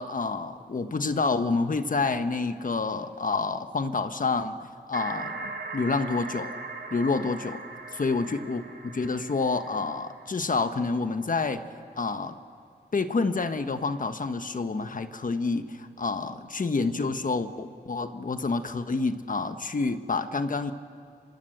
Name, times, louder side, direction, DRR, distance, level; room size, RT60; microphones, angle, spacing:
voice 1, 0.0-4.6 4.9-6.5 6.9-7.6 7.9-11.6 12.0-12.4 12.9-20.7, left 4 dB, 50° left, 9 dB, 1.3 m, -28 dB
sound 1, 4.9-10.6, right 3 dB, 80° right, 2.8 m, -39 dB
29.0 x 25.5 x 7.9 m, 2.3 s
wide cardioid pair, 85°, 17 cm